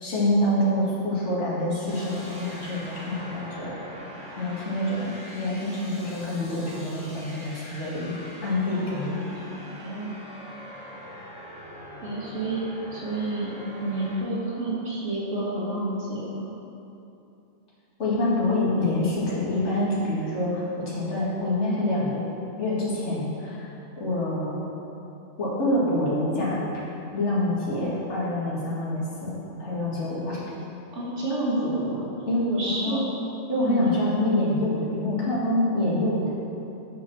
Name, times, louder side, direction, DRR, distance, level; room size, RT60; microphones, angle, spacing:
voice 1, 0.0-3.8 4.4-9.1 18.0-22.2 22.6-23.7 24.0-24.6 25.4-26.6 27.1-29.3 29.6-30.4 32.3-33.0 33.5-36.3, left 1 dB, 70° left, -8 dB, 2.3 m, -26 dB
sound 1, 1.9-14.2, equal, 5° right, 2.3 m, -42 dB
voice 2, 9.2-10.2 12.0-12.7 12.9-16.6 30.9-32.1 32.4-33.0 33.6-33.9, right 2 dB, 80° right, -6 dB, 2.2 m, -30 dB
8.3 x 6.2 x 6.0 m, 2.8 s
omnidirectional pair, 1.3 m